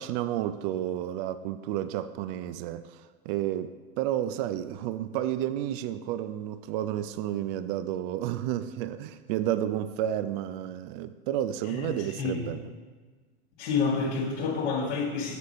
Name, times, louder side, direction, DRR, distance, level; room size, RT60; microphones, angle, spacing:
voice 1, 0.0-12.7, right 11 dB, 55° right, 12 dB, 0.5 m, -31 dB
voice 2, 11.7-12.5 13.6-15.4, left 4 dB, 80° left, -9 dB, 1.7 m, -29 dB
6.9 x 6.3 x 4.2 m, 1.4 s
hypercardioid pair, 115°, 32 cm